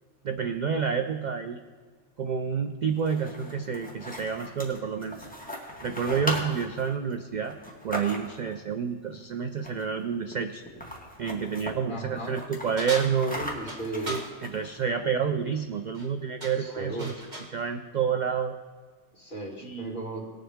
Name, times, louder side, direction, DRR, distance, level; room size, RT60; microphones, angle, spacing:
voice 1, 0.2-1.6 2.2-5.3 5.8-7.6 7.8-10.6 11.2-13.4 14.1-17.1 17.5-18.5 19.6-20.1, right 6 dB, 70° right, 7 dB, 0.4 m, -29 dB
sound 1, 2.9-8.5 9.6-10.0 10.3-10.4 10.7-11.7 12.2-14.8, equal, 5° left, 1.5 m, -38 dB
voice 2, 11.9-12.3 13.3-14.1 15.0-15.1 16.5-17.3 19.1-20.3, right 1 dB, 50° left, -2 dB, 2.6 m, -36 dB
sound 2, 12.8-14.3 15.8-16.1 16.4-17.6, right 1 dB, 35° right, 1.5 m, -38 dB
19.0 x 7.4 x 3.5 m, 1.5 s
omnidirectional pair, 1.3 m